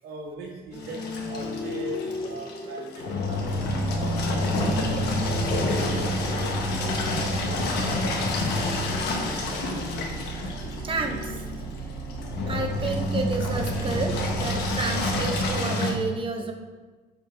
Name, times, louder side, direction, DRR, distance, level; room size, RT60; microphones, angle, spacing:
voice 1, 0.0-3.5 3.9-5.2 5.6-6.5 7.1-8.0, right 2 dB, 75° right, -2 dB, 1.4 m, -40 dB
sound 1, 0.7-14.4, left 4 dB, 30° left, 0.6 m, -37 dB
Engine, 0.8-15.9, left 1 dB, 75° left, 1.3 m, -28 dB
sound 2, 3.4-15.6, right 4 dB, 45° right, 2.2 m, -37 dB
voice 2, 10.8-11.4 12.5-16.5, right 4 dB, 30° right, 3 dB, 1.0 m, -30 dB
9.1 x 4.5 x 3.4 m, 1.3 s
cardioid pair, 110°, 17 cm